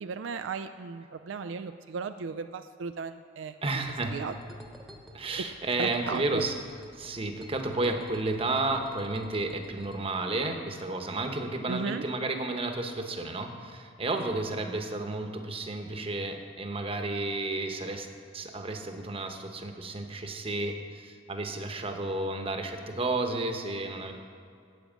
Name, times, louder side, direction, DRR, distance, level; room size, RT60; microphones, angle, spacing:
voice 1, 0.0-3.8 4.1-4.3 5.8-6.4 11.7-12.0, right 5 dB, 75° right, 9 dB, 0.4 m, -36 dB
voice 2, 3.6-4.2 5.1-6.5 6.9-18.1 18.3-24.1, right 2 dB, 30° right, 5 dB, 1.0 m, -32 dB
sound 1, 3.8-10.0, equal, ahead, 1.1 m, -51 dB
8.8 x 8.6 x 7.4 m, 2.3 s
head